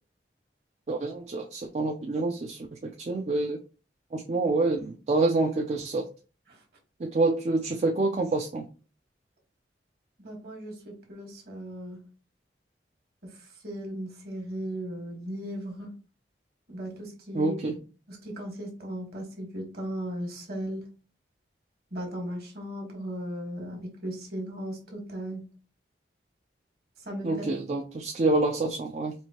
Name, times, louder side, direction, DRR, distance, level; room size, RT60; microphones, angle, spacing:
voice 1, 0.9-3.6 4.1-6.0 7.0-8.7 17.3-17.7 27.2-29.1, right 2 dB, 40° right, 3 dB, 0.4 m, -27 dB
voice 2, 10.2-12.0 13.2-15.9 16.7-17.6 18.1-20.9 21.9-25.4 27.0-27.4, equal, 60° right, 0 dB, 1.4 m, -37 dB
4.5 x 2.6 x 2.8 m, 0.35 s
head